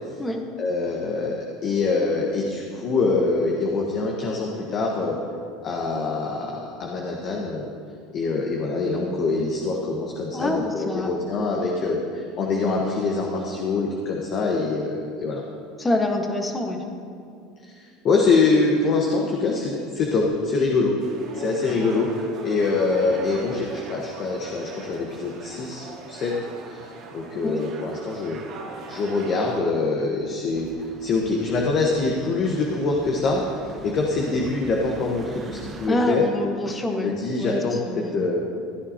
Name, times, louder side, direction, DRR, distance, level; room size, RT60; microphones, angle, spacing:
voice 1, 0.6-5.2 5.6-7.7 8.1-15.4 17.6-20.9 21.3-22.1 22.4-28.4 28.9-30.7 31.0-33.4 33.8-36.2 37.0-38.4, left 3 dB, 45° left, 0 dB, 1.3 m, -24 dB
voice 2, 10.3-11.3 15.8-16.8 21.7-21.8 27.4-27.7 35.9-37.1 37.4-38.3, left 1 dB, 15° left, 3 dB, 1.4 m, -26 dB
sound 1, 21.0-29.6, right 4 dB, 50° right, 2.1 m, -41 dB
sound 2, 30.5-35.9, right 4 dB, 30° right, 0.9 m, -42 dB
15.5 x 10.0 x 2.9 m, 2.4 s
hypercardioid pair, 95°, 0 cm